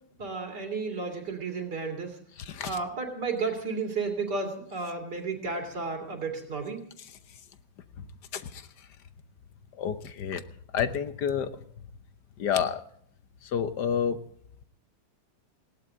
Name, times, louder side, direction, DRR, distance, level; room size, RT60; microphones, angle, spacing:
voice 1, 0.2-2.2 2.7-6.8, right 4 dB, 60° right, 3 dB, 3.6 m, -32 dB
voice 2, 2.4-2.8 8.3-8.6 9.8-10.4 10.7-11.5 12.4-12.8 13.4-14.2, left 8 dB, 65° left, 11 dB, 1.5 m, -29 dB
19.5 x 16.5 x 3.8 m, 0.62 s
omnidirectional pair, 2.0 m